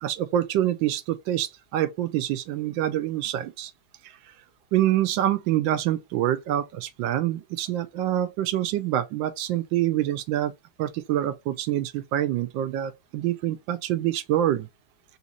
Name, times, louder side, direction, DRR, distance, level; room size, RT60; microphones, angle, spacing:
voice 1, 0.0-3.7 4.7-10.5 10.8-14.7, right 12 dB, 80° right, 1.3 m, -26 dB
3.9 x 2.8 x 2.4 m
omnidirectional pair, 2.1 m